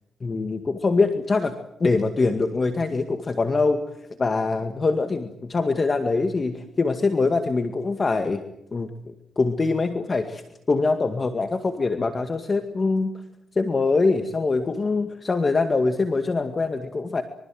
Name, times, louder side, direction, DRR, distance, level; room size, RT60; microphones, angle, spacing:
voice 1, 0.2-1.5 1.8-3.8 4.2-8.4 8.7-10.4 10.7-13.1 13.6-17.2, left 3 dB, 35° left, 7 dB, 2.1 m, -23 dB
25.5 x 24.5 x 7.8 m, 0.82 s
cardioid pair, 95°, 0 cm